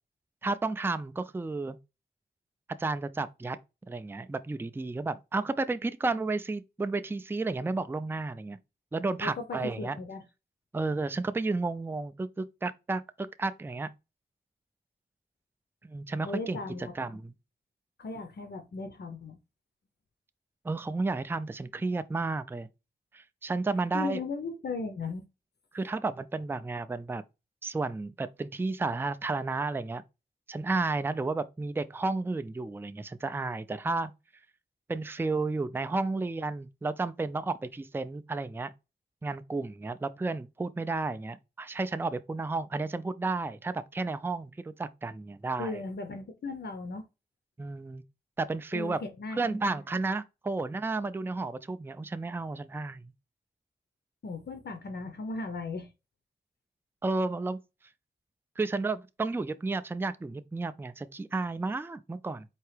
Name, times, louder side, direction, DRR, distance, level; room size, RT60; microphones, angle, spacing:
voice 1, 0.4-1.8 2.8-3.6 3.9-8.6 8.9-10.0 10.7-13.9 15.8-17.3 20.6-22.7 23.1-24.2 25.7-27.2 27.6-30.0 30.5-34.1 34.9-38.7 39.2-45.8 47.6-48.0 48.4-49.0 49.3-53.1 57.0-57.6 58.6-62.4, right 3 dB, 10° right, 0.3 m, -32 dB
voice 2, 9.2-10.2 16.3-17.2 18.0-19.4 23.9-25.2 45.6-47.0 48.7-49.6 54.2-55.9, left 3 dB, 70° left, 0.7 m, -37 dB
4.5 x 2.8 x 3.2 m
wide cardioid pair, 85°, 18 cm